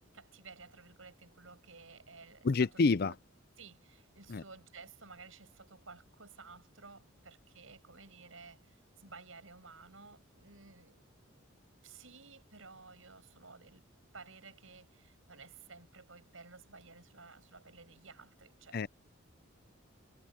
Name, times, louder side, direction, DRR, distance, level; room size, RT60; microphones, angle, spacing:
voice 1, 0.1-2.7 3.1-3.2 3.6-11.6 11.8-13.8 14.1-18.9, right 4 dB, 75° right, 6.8 m, -54 dB
voice 2, 2.4-3.1 4.3-4.4 18.7-18.9, left 4 dB, 50° left, 0.5 m, -28 dB
head